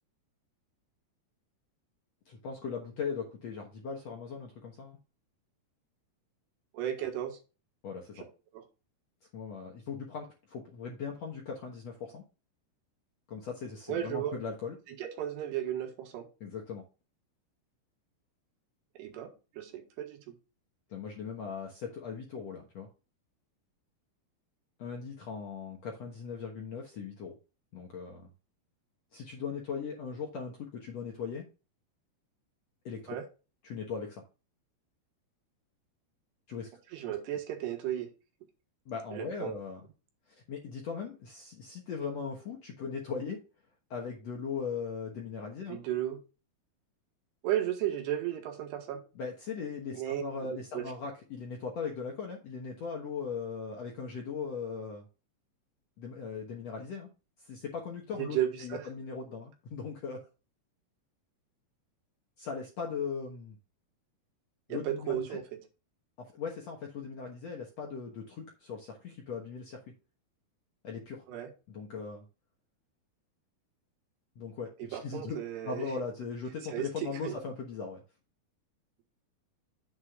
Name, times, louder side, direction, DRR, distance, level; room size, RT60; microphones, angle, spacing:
voice 1, 2.3-5.0 7.8-8.3 9.3-12.2 13.3-14.8 16.4-16.8 20.9-22.9 24.8-27.3 27.7-28.3 29.1-31.5 32.9-33.2 33.6-34.2 36.5-36.7 38.9-39.8 40.3-43.4 43.9-45.8 49.2-55.0 56.0-57.1 57.4-60.2 62.4-63.6 64.7-65.4 66.2-69.8 70.8-71.2 71.7-72.3 74.4-75.4 75.6-78.0, left 5 dB, 60° left, 0 dB, 1.8 m, -39 dB
voice 2, 6.7-7.4 8.2-8.3 8.5-8.6 13.9-14.4 15.0-16.3 19.0-20.3 33.1-33.2 36.9-38.1 39.1-39.6 45.7-46.2 47.4-49.0 49.9-50.2 50.5-50.9 58.2-58.8 64.7-65.4 71.3-71.5 74.8-75.9 76.7-77.3, right 11 dB, 80° right, 4 dB, 3.6 m, -34 dB
9.7 x 7.6 x 2.4 m, 0.31 s
omnidirectional pair, 4.7 m